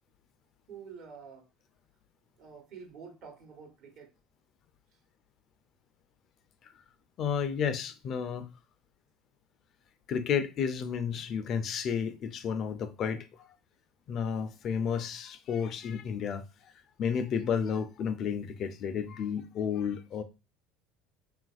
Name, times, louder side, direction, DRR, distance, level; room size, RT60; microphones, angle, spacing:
voice 1, 0.7-1.5 2.4-4.1, right 6 dB, 60° right, 1.1 m, -48 dB
voice 2, 7.2-8.5 10.1-13.3 14.1-16.4 17.0-20.2, left 7 dB, 50° left, 0.4 m, -31 dB
2.9 x 2.5 x 2.3 m
hypercardioid pair, 85°, 0 cm